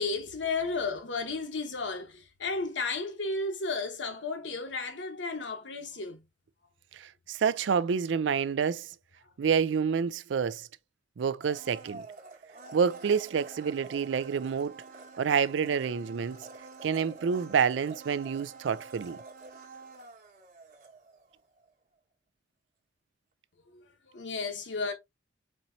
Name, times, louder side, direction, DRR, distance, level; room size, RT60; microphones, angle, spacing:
voice 1, 0.0-6.2 23.7-24.9, left 3 dB, 75° left, 1.1 m, -33 dB
voice 2, 6.9-8.9 9.4-10.7 11.2-12.1 12.7-14.8 15.2-16.4 16.8-19.2, right 6 dB, 75° right, 0.4 m, -28 dB
Domestic sounds home sounds, 11.4-21.3 21.6-21.7, right 3 dB, 50° right, 1.1 m, -48 dB
4.4 x 4.0 x 2.7 m
head